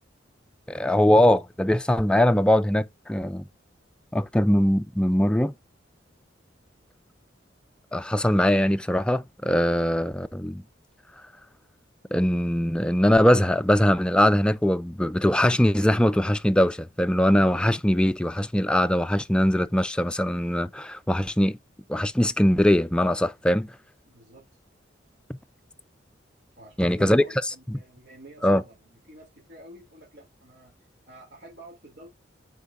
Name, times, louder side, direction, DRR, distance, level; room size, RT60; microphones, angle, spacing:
voice 1, 0.7-3.4 4.1-5.5 7.9-10.6 12.1-21.6 21.9-23.7 26.8-27.2 27.7-27.8 28.4-28.6, left 1 dB, 5° left, 0.3 m, -21 dB
voice 2, 24.0-24.5 26.6-30.7 31.1-32.1, right 1 dB, 60° right, 2.7 m, -48 dB
8.3 x 4.6 x 2.5 m
head